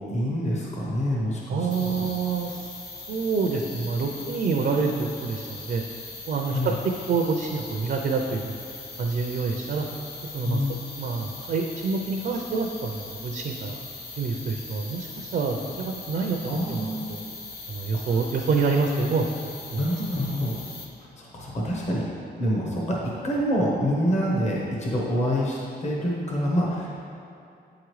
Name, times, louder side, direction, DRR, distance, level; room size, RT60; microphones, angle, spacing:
voice 1, 0.0-2.1 6.4-6.7 10.4-10.8 16.5-17.1 17.9-18.0 19.8-20.5 21.0-22.1 22.4-26.9, equal, 40° left, -4 dB, 1.0 m, -27 dB
voice 2, 1.5-2.7 3.1-5.8 6.3-6.7 7.1-8.6 9.0-9.9 10.2-10.6 11.0-13.8 14.1-17.2 17.7-19.8, right 4 dB, 55° right, 1 dB, 0.5 m, -27 dB
sound 1, 1.7-20.9, left 3 dB, 65° left, 0.9 m, -40 dB
8.4 x 4.8 x 3.1 m, 2.5 s
wide cardioid pair, 165°, 18 cm